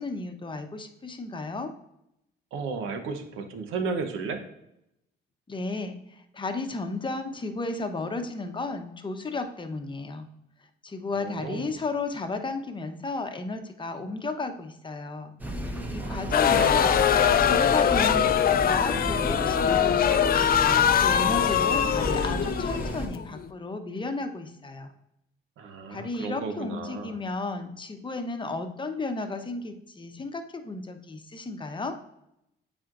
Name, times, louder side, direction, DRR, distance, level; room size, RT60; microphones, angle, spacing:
voice 1, 0.0-1.7 5.5-10.3 10.8-15.4 15.6-24.9 25.9-31.9, left 3 dB, 25° left, 6 dB, 0.8 m, -33 dB
voice 2, 2.5-4.4 11.2-11.7 16.0-16.7 25.6-27.2, right 4 dB, 90° right, 7 dB, 0.9 m, -34 dB
sound 1, 15.4-23.1, right 1 dB, 10° right, 0.9 m, -33 dB
sound 2, 16.3-23.5, left 9 dB, 50° left, 0.4 m, -22 dB
8.7 x 4.3 x 2.5 m, 0.82 s
cardioid pair, 90°, 20 cm